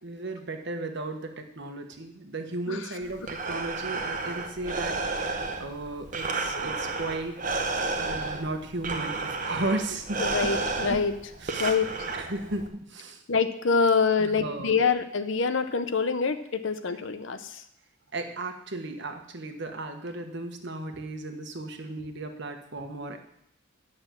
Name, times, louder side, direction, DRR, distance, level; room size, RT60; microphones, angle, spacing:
voice 1, 0.0-7.4 8.0-10.2 11.4-11.8 12.1-13.2 14.2-14.7 18.1-23.2, right 2 dB, 55° right, 6 dB, 1.3 m, -35 dB
Breathing, 3.0-12.7, right 3 dB, 35° right, 1.0 m, -32 dB
voice 2, 10.2-11.1 11.6-12.1 13.3-17.6, left 5 dB, 60° left, 10 dB, 0.7 m, -26 dB
9.4 x 6.5 x 7.4 m, 0.74 s
head